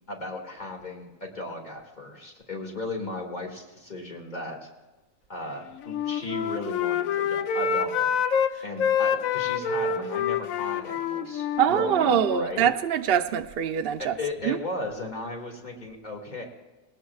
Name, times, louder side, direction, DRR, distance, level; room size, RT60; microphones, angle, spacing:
voice 1, 0.1-4.6 5.3-8.2 8.6-12.7 14.0-16.4, left 2 dB, 35° left, 1 dB, 2.2 m, -36 dB
Wind instrument woodwind instrument, 5.8-8.5 8.8-12.4, left 7 dB, 80° left, 1.1 m, -27 dB
voice 2, 11.6-14.1 14.4-14.6, right 9 dB, 65° right, 6 dB, 0.6 m, -24 dB
21.0 x 18.0 x 2.3 m, 1.2 s
omnidirectional pair, 1.4 m